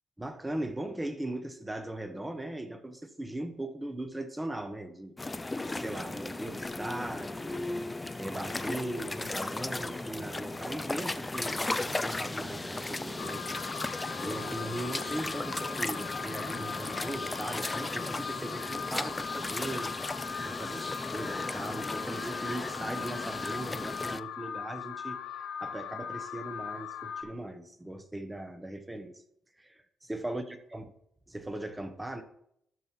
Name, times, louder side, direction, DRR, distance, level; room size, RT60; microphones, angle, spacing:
voice 1, 0.2-13.7 14.2-20.1 20.4-29.2 29.6-30.9 31.3-32.2, right 1 dB, 10° right, 1.0 m, -39 dB
sound 1, 5.2-24.2, left 2 dB, 15° left, 0.4 m, -36 dB
Subway metro underground, 6.4-23.4, right 2 dB, 40° right, 4.2 m, -53 dB
Alarm, 13.2-27.2, left 7 dB, 75° left, 1.4 m, -40 dB
12.5 x 5.4 x 4.5 m
cardioid pair, 115°, 0 cm